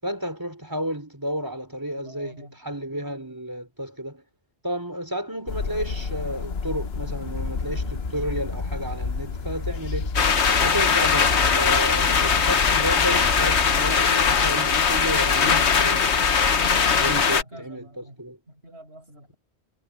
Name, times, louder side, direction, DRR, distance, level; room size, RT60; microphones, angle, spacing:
voice 1, 0.0-4.2 4.6-10.1 10.6-16.5 16.9-17.9 18.2-18.4, equal, 20° right, 5.2 m, -32 dB
voice 2, 2.0-2.6 10.2-10.6 12.6-12.9 17.1-19.4, right 1 dB, 75° right, 7.6 m, -47 dB
sound 1, 5.5-17.3, left 5 dB, 70° left, 1.3 m, -32 dB
sound 2, 7.2-13.8, left 2 dB, 40° left, 2.0 m, -34 dB
sound 3, 10.1-17.4, left 6 dB, 90° left, 1.5 m, -20 dB
omnidirectional pair, 1.1 m